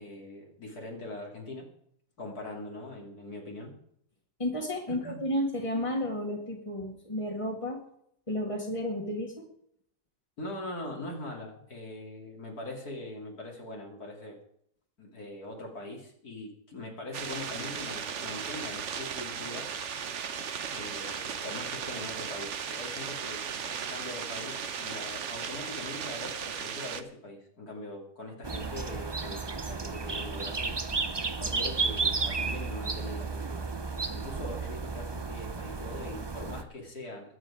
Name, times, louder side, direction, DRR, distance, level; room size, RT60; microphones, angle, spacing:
voice 1, 0.0-1.7 2.2-3.7 4.9-5.2 10.4-14.4 15.0-19.7 20.7-30.8 31.4-33.7 34.1-37.4, left 2 dB, 65° left, 0 dB, 3.3 m, -42 dB
voice 2, 4.4-7.8 8.3-9.4, left 1 dB, 20° left, -3 dB, 2.0 m, -32 dB
sound 1, 17.1-27.0, right 7 dB, 50° right, 1.2 m, -36 dB
sound 2, 28.4-36.6, right 4 dB, 30° right, 0.5 m, -33 dB
22.5 x 8.2 x 4.9 m, 0.70 s
omnidirectional pair, 1.7 m